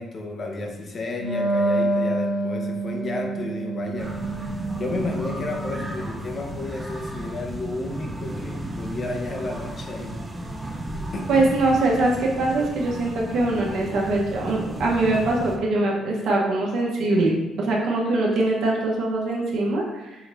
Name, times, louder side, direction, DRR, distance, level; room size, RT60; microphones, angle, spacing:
voice 1, 0.0-4.1 4.8-10.2 11.1-11.5, left 2 dB, 45° left, 2 dB, 0.8 m, -32 dB
Wind instrument woodwind instrument, 1.1-6.2, right 1 dB, 10° left, 1.2 m, -27 dB
sound 1, 4.0-15.6, right 1 dB, 15° right, 0.6 m, -34 dB
voice 2, 11.3-20.2, right 2 dB, 80° right, -3 dB, 1.0 m, -22 dB
4.9 x 2.7 x 3.1 m, 1.1 s
cardioid pair, 90°, 0 cm